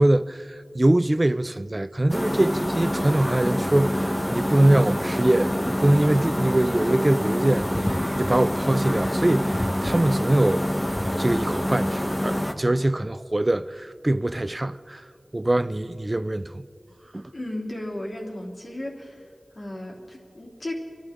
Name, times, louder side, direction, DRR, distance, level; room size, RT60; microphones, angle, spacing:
voice 1, 0.0-10.6 11.2-15.0 15.3-16.7 17.1-17.3, right 1 dB, 35° right, 0.4 m, -23 dB
sound 1, 2.1-12.5, equal, 15° left, 1.0 m, -26 dB
voice 2, 17.3-19.3 19.5-20.7, left 1 dB, 55° left, 3.2 m, -35 dB
27.5 x 12.5 x 3.7 m
wide cardioid pair, 55°, 0 cm